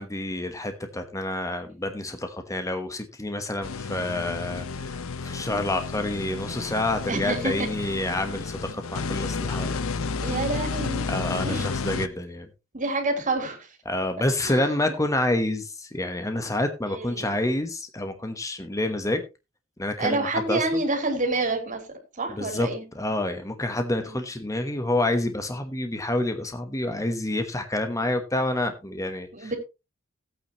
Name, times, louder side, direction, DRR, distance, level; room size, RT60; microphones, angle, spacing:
voice 1, 0.0-9.8 11.1-12.5 13.8-19.2 19.8-20.8 22.3-22.7 22.9-29.5, left 1 dB, 15° left, 7 dB, 1.2 m, -28 dB
sound 1, 3.6-12.1, left 4 dB, 80° left, 0.7 m, -31 dB
voice 2, 7.1-7.7 10.2-11.2 11.4-11.7 12.7-13.6 14.4-14.7 16.9-17.3 20.0-21.8 22.2-22.8 24.1-24.2 29.3-29.6, right 2 dB, 40° right, 2 dB, 3.7 m, -28 dB
16.0 x 8.8 x 3.0 m, 0.27 s
head